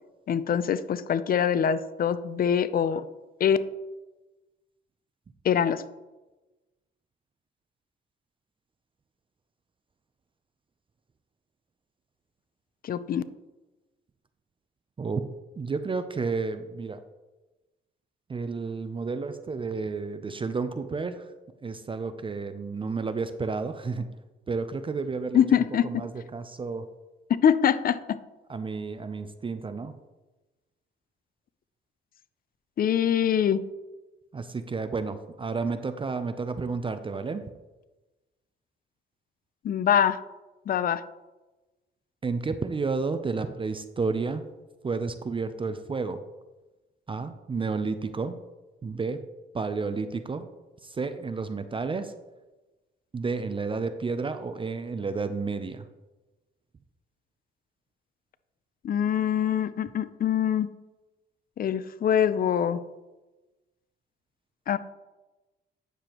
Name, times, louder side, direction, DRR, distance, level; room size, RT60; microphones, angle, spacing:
voice 1, 0.3-3.0 3.4-3.6 5.4-5.8 12.8-13.2 25.3-26.0 27.4-28.2 32.8-33.6 39.6-40.2 40.7-41.0 58.8-60.7 61.6-62.8 64.7-64.8, left 8 dB, 50° left, 14 dB, 0.5 m, -24 dB
voice 2, 15.6-17.0 18.3-21.3 21.6-24.1 24.5-25.4 25.8-26.9 28.5-29.9 34.3-37.4 42.2-44.4 44.8-46.2 47.1-48.4 48.8-49.2 49.5-50.5 50.8-52.1 53.1-55.9, right 4 dB, 25° right, 10 dB, 0.5 m, -31 dB
9.4 x 6.8 x 3.0 m, 1.1 s
cardioid pair, 90°, 20 cm